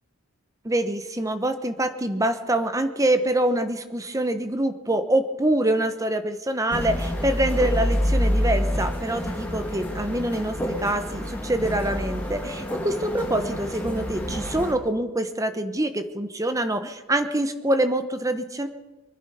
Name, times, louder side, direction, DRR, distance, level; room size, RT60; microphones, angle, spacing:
voice 1, 0.6-18.7, right 1 dB, 15° right, 9 dB, 1.0 m, -25 dB
sound 1, 6.7-14.7, equal, 10° left, 2.5 m, -27 dB
25.0 x 10.5 x 5.6 m, 1.2 s
head